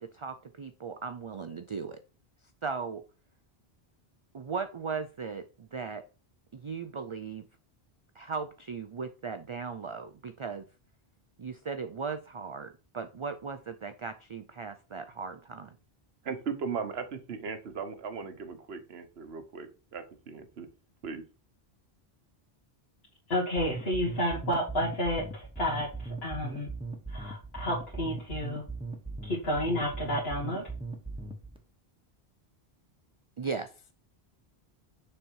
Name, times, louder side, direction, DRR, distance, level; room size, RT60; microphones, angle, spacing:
voice 1, 0.0-2.0 2.6-3.0 4.3-6.0 6.5-7.4 8.2-10.6 11.4-15.8 33.4-33.7, right 5 dB, 55° right, 9 dB, 0.3 m, -37 dB
voice 2, 16.2-20.7 21.0-21.2, right 5 dB, 75° right, 9 dB, 1.2 m, -37 dB
voice 3, 23.3-26.7 27.1-28.6 29.2-30.7, equal, 75° left, -5 dB, 2.0 m, -31 dB
sound 1, 23.6-31.6, right 3 dB, 5° right, 0.9 m, -39 dB
6.6 x 4.3 x 4.5 m, 0.35 s
omnidirectional pair, 1.1 m